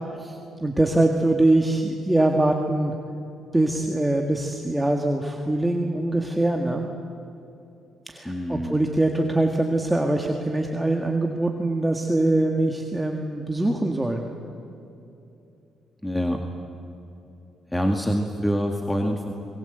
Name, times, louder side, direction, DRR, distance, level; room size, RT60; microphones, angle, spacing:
voice 1, 0.2-3.0 3.5-6.9 8.1-14.3, right 2 dB, 10° right, 2 dB, 1.9 m, -23 dB
voice 2, 8.3-8.8 16.0-16.4 17.7-19.3, equal, 5° left, 3 dB, 2.0 m, -25 dB
26.5 x 21.5 x 8.1 m, 2.8 s
cardioid pair, 90°, 0 cm